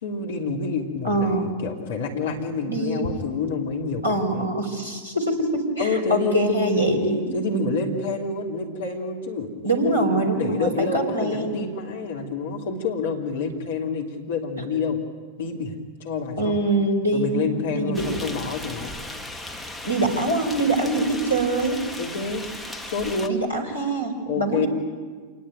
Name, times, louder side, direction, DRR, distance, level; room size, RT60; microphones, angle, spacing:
voice 1, 0.0-4.5 5.8-15.0 15.4-16.5 17.1-18.9 22.0-22.5 22.8-23.4 24.2-24.7, left 3 dB, 60° left, 1 dB, 3.3 m, -28 dB
voice 2, 1.0-1.5 2.6-3.1 4.0-7.7 9.6-11.6 16.4-18.3 19.8-21.8 23.3-24.7, right 1 dB, 90° left, 2 dB, 4.8 m, -24 dB
sound 1, 17.9-23.3, left 1 dB, ahead, 2.1 m, -36 dB
27.5 x 20.0 x 9.1 m, 1.5 s
figure-of-eight pair, 90°, 0 cm